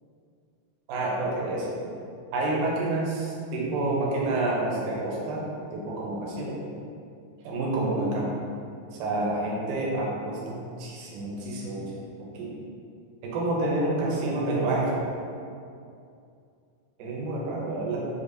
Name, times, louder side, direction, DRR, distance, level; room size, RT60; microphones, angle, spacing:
voice 1, 0.9-1.7 2.3-5.4 5.7-6.6 7.5-8.3 9.0-11.9 12.2-12.5 13.2-15.0 17.0-18.0, right 2 dB, 75° right, -4 dB, 2.2 m, -28 dB
6.5 x 2.8 x 2.6 m, 2.4 s
omnidirectional pair, 3.9 m